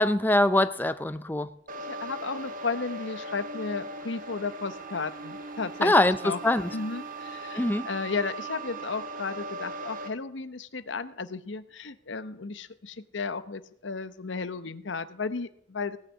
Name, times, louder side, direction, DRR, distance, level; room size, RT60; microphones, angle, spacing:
voice 1, 0.0-1.5 5.8-6.7 7.5-7.9, left 1 dB, 10° left, 11 dB, 0.5 m, -23 dB
sound 1, 1.7-10.1, right 2 dB, 45° right, 1.5 m, -39 dB
voice 2, 1.8-6.4 6.7-16.0, left 4 dB, 70° left, 13 dB, 0.9 m, -34 dB
18.0 x 6.6 x 8.4 m, 0.67 s
head